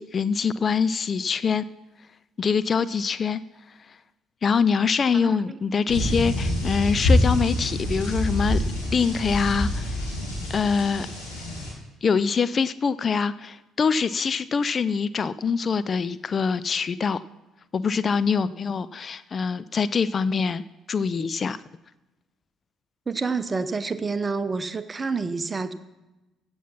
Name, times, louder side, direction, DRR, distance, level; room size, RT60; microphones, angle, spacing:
voice 1, 0.0-1.6 2.4-3.4 4.4-8.6 8.9-10.0 10.5-11.1 12.0-17.2 17.7-20.6 20.9-21.6, left 5 dB, 35° left, 16 dB, 0.4 m, -24 dB
voice 2, 5.2-5.6 23.1-25.7, right 4 dB, 25° right, 13 dB, 0.8 m, -28 dB
sound 1, 5.9-11.7, left 1 dB, 70° left, 5.1 m, -26 dB
15.5 x 7.1 x 5.8 m, 1.0 s
figure-of-eight pair, 50°, 0 cm